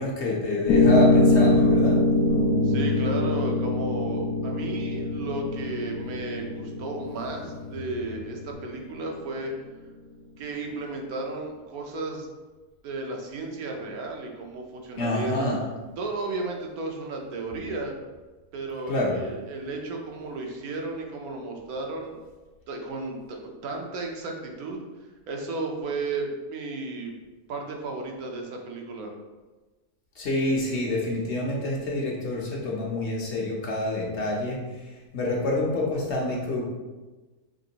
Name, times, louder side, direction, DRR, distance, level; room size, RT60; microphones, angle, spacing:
voice 1, 0.0-2.0 15.0-15.6 18.9-19.2 30.2-36.6, left 1 dB, 55° left, -3 dB, 1.0 m, -27 dB
Piano, 0.7-8.7, left 2 dB, 80° left, 1.1 m, -23 dB
Bass guitar, 2.3-8.5, left 4 dB, 55° right, 1.0 m, -36 dB
voice 2, 2.6-9.5 10.4-12.3 12.8-15.5 16.0-17.9 18.5-22.2 22.7-24.8 25.3-27.1 27.5-29.1, right 3 dB, 80° right, 1 dB, 1.2 m, -34 dB
5.2 x 3.0 x 2.8 m, 1.2 s
omnidirectional pair, 1.5 m